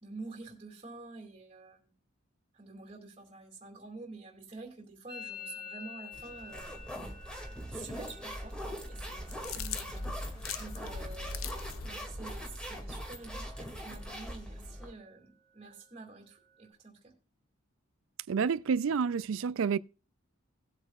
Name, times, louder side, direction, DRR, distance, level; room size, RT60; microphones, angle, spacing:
voice 1, 0.0-1.9 2.5-6.8 7.7-17.1, right 3 dB, 30° right, 2.3 m, -48 dB
Musical instrument, 5.1-12.7 13.0-13.6 13.8-14.4 14.7-16.7, left 5 dB, 25° left, 2.6 m, -51 dB
sound 1, 6.1-14.9, equal, 5° left, 2.0 m, -41 dB
eating popcorn, 9.1-12.0, left 5 dB, 80° left, 0.7 m, -40 dB
voice 2, 18.3-19.8, right 6 dB, 70° right, 0.4 m, -29 dB
18.5 x 8.1 x 2.3 m
head